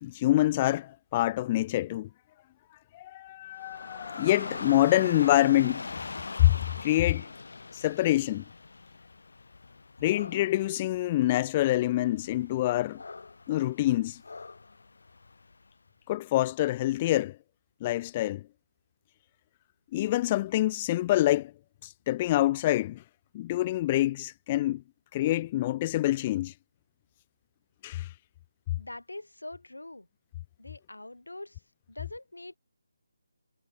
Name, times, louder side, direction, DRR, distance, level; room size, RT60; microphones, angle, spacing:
voice 1, 0.0-2.1 2.9-5.8 6.4-6.5 6.8-7.3 7.7-8.4 10.0-13.0 13.5-14.2 16.1-17.4 17.8-18.4 19.9-21.5 21.8-23.0 23.3-24.8 25.1-26.5 27.8-28.1, left 15 dB, 25° left, 0.6 m, -26 dB
Dog / Rain, 3.5-15.7, left 3 dB, 65° left, 6.7 m, -42 dB
voice 2, 28.8-30.1 30.6-32.6, left 2 dB, 85° left, 5.6 m, -44 dB
figure-of-eight pair, 155°, 0 cm